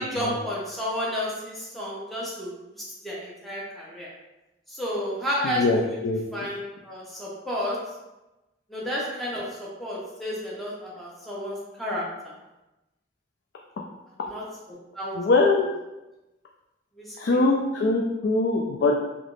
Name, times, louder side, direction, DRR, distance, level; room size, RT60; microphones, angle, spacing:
voice 1, 0.0-2.5 3.0-4.1 4.7-6.0 6.3-7.8 8.7-12.0 14.2-14.4 14.9-15.1 17.0-17.4, equal, ahead, -6 dB, 0.8 m, -31 dB
voice 2, 5.4-6.2 15.2-15.7 17.2-18.9, left 3 dB, 70° left, -1 dB, 0.4 m, -22 dB
3.3 x 2.9 x 2.5 m, 1.0 s
head